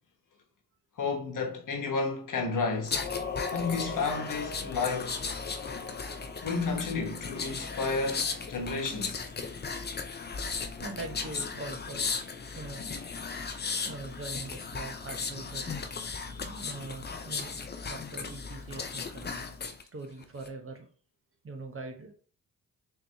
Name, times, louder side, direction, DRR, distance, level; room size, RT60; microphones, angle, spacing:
voice 1, 1.0-3.0 3.5-5.2 6.4-9.3, left 4 dB, 50° left, 1.2 m, -31 dB
sound 1, 2.8-19.8 20.2-20.5, left 5 dB, 25° left, 0.6 m, -36 dB
voice 2, 10.8-12.1 12.5-13.0 13.8-15.8 16.4-17.6 17.8-19.5 19.9-20.9 21.4-22.1, right 3 dB, 30° right, 0.9 m, -42 dB
3.7 x 3.0 x 3.4 m
supercardioid pair, 50°, 41 cm